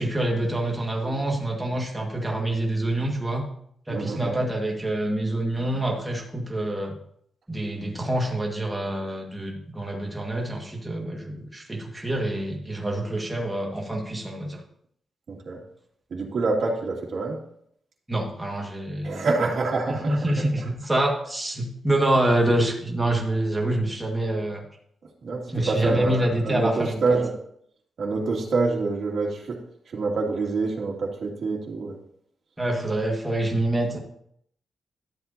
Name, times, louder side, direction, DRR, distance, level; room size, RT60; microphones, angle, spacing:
voice 1, 0.0-3.4 3.9-6.9 7.5-14.6 18.1-19.2 19.9-24.6 25.5-27.2 32.6-34.0, right 1 dB, 10° right, 0 dB, 1.7 m, -26 dB
voice 2, 3.9-4.3 15.3-15.6 16.1-17.4 19.0-20.3 25.2-27.3 28.0-29.6 29.9-32.0, right 3 dB, 60° right, -2 dB, 2.3 m, -26 dB
12.0 x 8.0 x 2.8 m, 0.68 s
wide cardioid pair, 130°, 0 cm